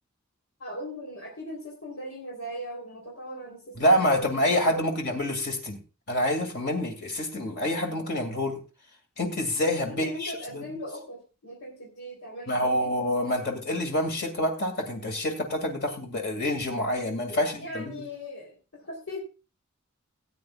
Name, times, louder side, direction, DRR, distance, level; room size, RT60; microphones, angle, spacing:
voice 1, 0.6-4.4 4.7-5.0 9.8-12.9 13.2-13.4 17.3-18.5 18.8-19.2, equal, 85° left, -2 dB, 3.5 m, -39 dB
voice 2, 3.8-5.8 6.1-8.6 9.2-10.8 12.5-18.1, left 1 dB, 50° left, 3 dB, 2.3 m, -27 dB
18.0 x 9.0 x 2.4 m, 0.32 s
head